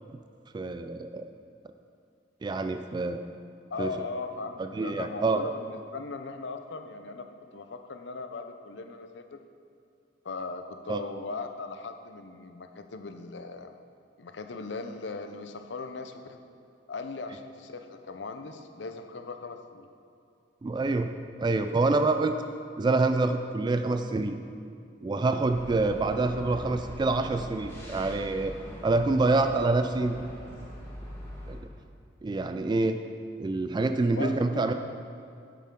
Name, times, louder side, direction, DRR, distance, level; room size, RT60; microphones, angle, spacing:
voice 1, 0.5-1.3 2.4-3.2 3.8-3.9 4.7-5.4 10.9-11.0 20.6-21.1 21.4-22.4 22.8-24.4 25.0-28.5 28.8-30.2 31.5-31.6 32.2-33.0 33.4-34.7, right 3 dB, 25° right, 8 dB, 0.3 m, -26 dB
voice 2, 3.7-9.5 10.2-13.8 14.2-16.4 16.9-19.9 34.1-34.7, left 3 dB, 80° left, 7 dB, 0.6 m, -38 dB
sound 1, 25.5-31.6, equal, 15° left, 1.5 m, -42 dB
9.2 x 8.5 x 3.7 m, 2.4 s
head